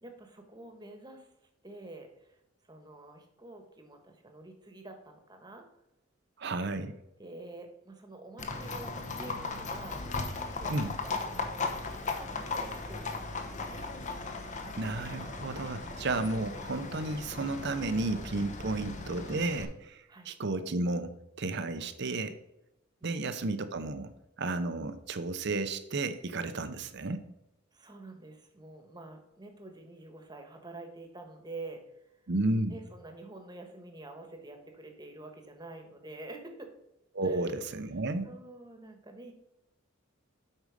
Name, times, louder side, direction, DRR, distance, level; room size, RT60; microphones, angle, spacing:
voice 1, 0.0-1.3 1.6-2.4 2.7-5.6 7.2-13.8 18.6-18.8 20.1-20.3 21.8-21.9 27.7-32.1 32.7-36.7 37.2-37.7 38.2-39.3, right 2 dB, 20° right, 4 dB, 1.3 m, -48 dB
voice 2, 6.4-6.9 10.7-10.9 14.7-21.1 21.4-22.4 23.0-24.1 24.4-27.2 32.3-32.7 37.1-38.3, right 2 dB, 55° right, 11 dB, 0.7 m, -32 dB
Livestock farm animals working animals, 8.4-19.6, left 3 dB, 35° left, 1.0 m, -37 dB
8.2 x 5.3 x 5.1 m, 0.86 s
head